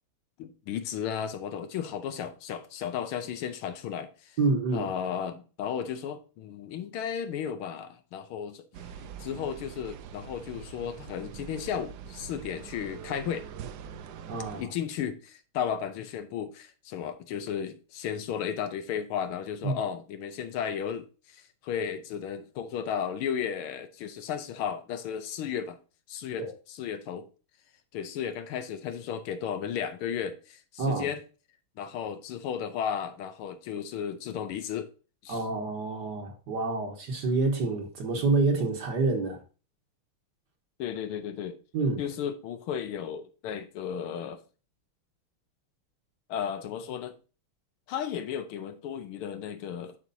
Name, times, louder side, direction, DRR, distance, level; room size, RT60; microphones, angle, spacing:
voice 1, 0.4-4.4 4.7-8.6 9.2-13.5 14.6-25.8 26.1-27.3 27.9-31.2 31.8-34.9 35.2-35.4 40.8-41.6 42.0-44.4 46.3-47.1 47.9-50.0, left 8 dB, 75° left, 1.5 m, -34 dB
voice 2, 4.4-4.9 14.3-14.7 19.6-19.8 26.4-26.5 30.8-31.1 35.3-39.4 41.7-42.0, right 3 dB, 55° right, 1.6 m, -27 dB
sound 1, 8.7-14.6, right 8 dB, 80° right, 0.9 m, -44 dB
11.0 x 4.7 x 2.7 m
omnidirectional pair, 2.4 m